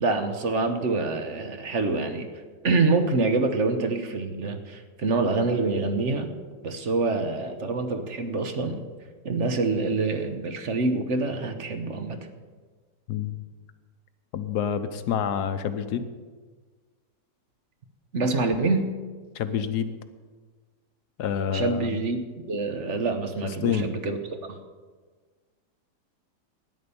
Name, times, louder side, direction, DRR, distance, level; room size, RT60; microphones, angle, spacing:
voice 1, 0.0-2.3 2.6-6.3 6.6-8.8 9.2-12.2 18.1-18.9 21.5-24.2 24.5-24.6, right 3 dB, 45° right, 7 dB, 1.2 m, -26 dB
voice 2, 13.1-13.4 14.3-16.1 19.3-20.0 21.2-21.9 23.6-23.9, left 8 dB, 65° left, 10 dB, 1.4 m, -27 dB
13.0 x 10.0 x 6.9 m, 1.5 s
omnidirectional pair, 1.9 m